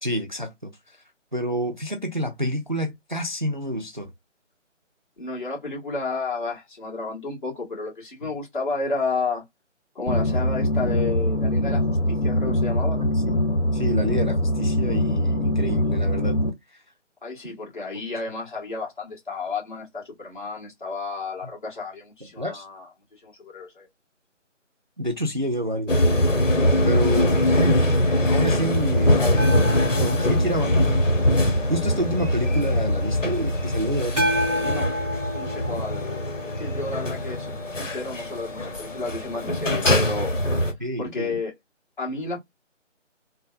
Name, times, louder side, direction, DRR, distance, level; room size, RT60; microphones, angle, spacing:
voice 1, 0.0-1.0 1.3-4.1 8.2-8.3 13.0-13.4 13.7-16.4 16.7-16.8 17.9-18.0 22.2-22.7 25.0-26.0 26.4-26.5 26.8-27.9 28.2-29.5 30.0-31.0 31.7-34.3 35.7-35.8 40.8-41.4, right 1 dB, 40° right, 0.4 m, -28 dB
voice 2, 5.2-9.4 9.9-13.4 17.2-22.9 23.2-23.9 34.6-34.9 35.3-40.3 41.0-41.5 42.0-42.4, left 3 dB, 40° left, 1.6 m, -32 dB
sound 1, 10.1-16.5, left 1 dB, 65° left, 1.4 m, -23 dB
sound 2, 25.9-40.7, left 1 dB, 85° left, 1.1 m, -22 dB
sound 3, 29.4-32.2 34.2-37.4 40.2-40.3, equal, 5° left, 0.9 m, -30 dB
3.3 x 2.0 x 2.4 m
figure-of-eight pair, 155°, 37 cm